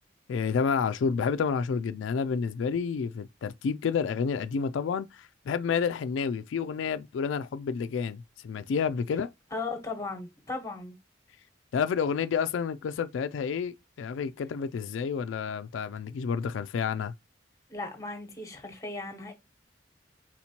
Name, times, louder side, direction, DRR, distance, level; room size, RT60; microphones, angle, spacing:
voice 1, 0.3-9.3 11.7-17.1, left 6 dB, 90° left, 0.3 m, -29 dB
voice 2, 9.5-11.0 17.7-19.3, left 3 dB, 15° left, 1.1 m, -36 dB
4.4 x 4.3 x 2.8 m
head